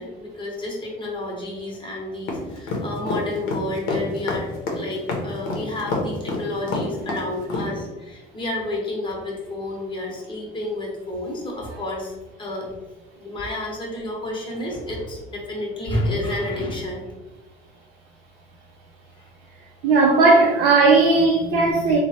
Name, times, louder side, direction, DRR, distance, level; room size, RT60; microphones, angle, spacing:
voice 1, 0.0-4.5 4.7-12.1 12.4-12.7 13.2-17.0 19.2-19.3, left 1 dB, 25° left, -2 dB, 0.8 m, -30 dB
sound 1, 2.3-7.7, left 3 dB, 75° left, 0.6 m, -27 dB
voice 2, 19.8-22.0, right 3 dB, 90° right, -2 dB, 0.5 m, -16 dB
3.0 x 2.1 x 2.7 m, 1.1 s
cardioid pair, 110°, 21 cm